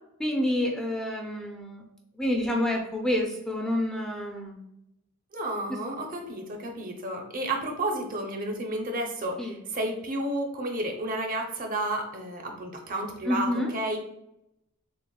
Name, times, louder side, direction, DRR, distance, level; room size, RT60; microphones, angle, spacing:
voice 1, 0.2-1.8 2.1-4.6 9.4-9.6 13.3-13.7, left 1 dB, 5° left, 0 dB, 0.4 m, -28 dB
voice 2, 5.3-14.0, right 1 dB, 40° right, 3 dB, 0.6 m, -31 dB
6.3 x 2.1 x 2.3 m, 0.82 s
head